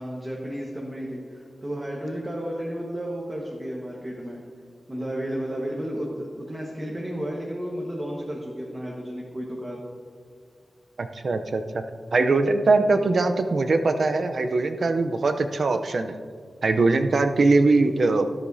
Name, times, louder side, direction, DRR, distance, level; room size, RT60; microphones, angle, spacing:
voice 1, 0.0-4.4 4.9-9.8, equal, 20° right, -3 dB, 1.3 m, -32 dB
voice 2, 11.0-11.8 12.1-16.2 16.6-18.4, right 3 dB, 60° right, 7 dB, 0.6 m, -21 dB
13.5 x 13.0 x 2.7 m, 2.1 s
wide cardioid pair, 145°, 0 cm